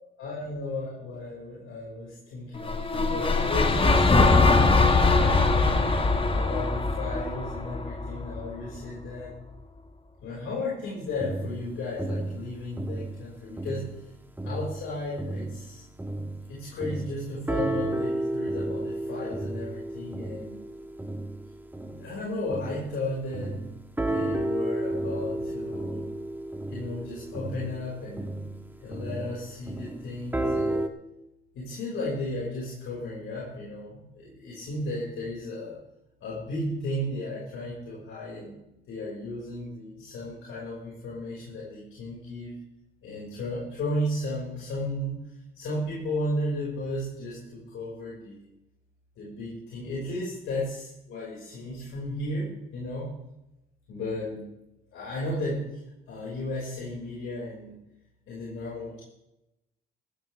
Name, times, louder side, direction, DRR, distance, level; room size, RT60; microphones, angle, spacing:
voice 1, 0.2-6.0 6.3-9.3 10.2-13.9 14.4-15.8 16.5-20.6 22.0-23.6 24.1-26.1 26.7-28.4 28.8-30.8 31.5-35.8 36.2-38.6 38.9-42.5 43.0-45.2 45.5-48.4 49.2-53.1 53.9-54.5 54.9-55.8 56.1-57.8 58.3-59.0, left 1 dB, 80° left, -6 dB, 5.9 m, -34 dB
sound 1, 2.6-8.8, left 3 dB, 25° left, 1.8 m, -22 dB
sound 2, 11.2-14.1 14.4-23.0 23.3-30.9, right 1 dB, 10° right, 1.8 m, -32 dB
15.5 x 15.0 x 3.6 m, 0.89 s
cardioid pair, 80°, 21 cm